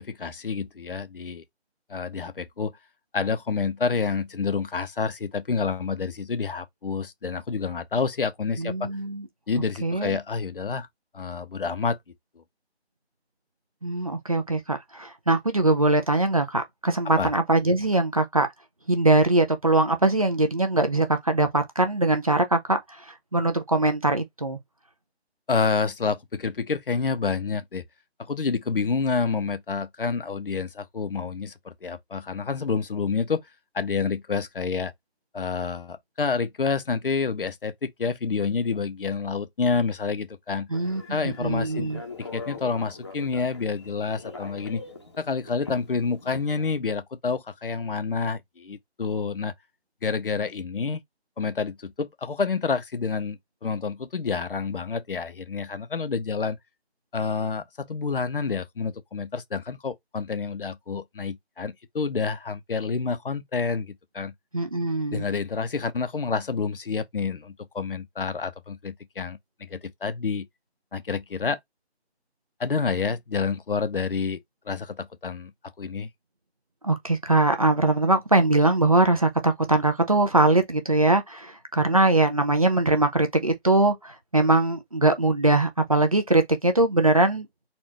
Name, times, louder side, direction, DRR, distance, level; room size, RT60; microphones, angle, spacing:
voice 1, 0.0-1.4 1.9-2.7 3.1-8.9 9.5-10.9 11.1-12.0 12.4-12.5 17.2-17.3 25.5-27.8 28.3-33.4 33.7-34.9 35.3-40.7 41.1-41.9 42.2-44.8 45.2-49.5 50.0-51.0 51.4-56.6 57.1-64.3 65.1-70.5 70.9-71.6 72.6-74.4 74.7-75.5 75.8-76.1, left 5 dB, 55° left, 0.8 m, -28 dB
voice 2, 8.6-9.3 9.8-10.2 13.8-18.5 18.9-24.6 40.7-42.0 64.5-65.2 76.8-87.5, right 2 dB, 35° right, 0.6 m, -22 dB
Telephone, 40.7-46.8, left 3 dB, 25° left, 0.8 m, -42 dB
4.3 x 2.5 x 4.2 m
figure-of-eight pair, 170°, 33 cm